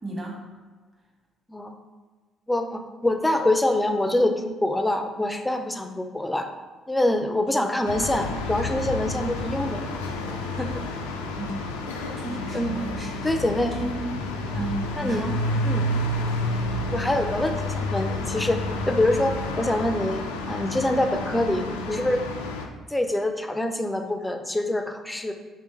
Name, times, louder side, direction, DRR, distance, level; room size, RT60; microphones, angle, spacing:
voice 1, 0.0-0.4 11.4-11.6 12.2-13.2 13.6-14.2 14.5-15.4, right 2 dB, 25° right, -1 dB, 1.1 m, -33 dB
voice 2, 2.5-6.5 6.9-9.8 10.6-10.8 12.5-12.9 13.2-13.7 15.0-15.3 15.6-15.8 16.9-18.6 18.9-22.3 22.9-25.3, left 1 dB, 10° left, 6 dB, 0.5 m, -25 dB
sound 1, 7.8-22.7, left 2 dB, 75° left, 0.4 m, -30 dB
4.4 x 3.3 x 3.0 m, 1.4 s
figure-of-eight pair, 45°, 0 cm